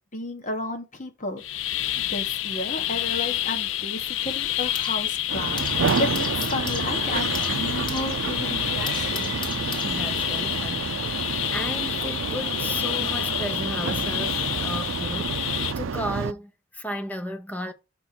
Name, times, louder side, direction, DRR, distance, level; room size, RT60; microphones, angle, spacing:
voice 1, 0.1-1.4 2.0-9.3, left 2 dB, 40° left, 1.5 m, -33 dB
sound 1, 1.4-15.7, left 13 dB, 75° left, 0.5 m, -28 dB
sound 2, 3.0-5.1 5.3-10.4, left 3 dB, 25° left, 1.3 m, -40 dB
sound 3, 5.3-16.3, right 5 dB, 85° right, 0.5 m, -30 dB
voice 2, 9.8-17.7, equal, 10° left, 0.7 m, -34 dB
6.0 x 4.2 x 5.7 m
head